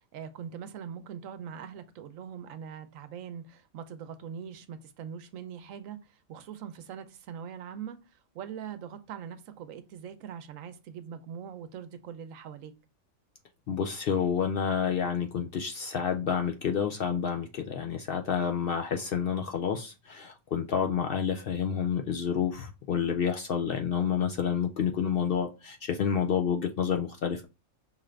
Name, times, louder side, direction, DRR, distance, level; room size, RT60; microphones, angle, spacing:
voice 1, 0.1-12.7, right 8 dB, 85° right, 1.0 m, -42 dB
voice 2, 13.7-27.4, left 7 dB, 65° left, 0.6 m, -29 dB
5.6 x 2.4 x 3.2 m
omnidirectional pair, 1.4 m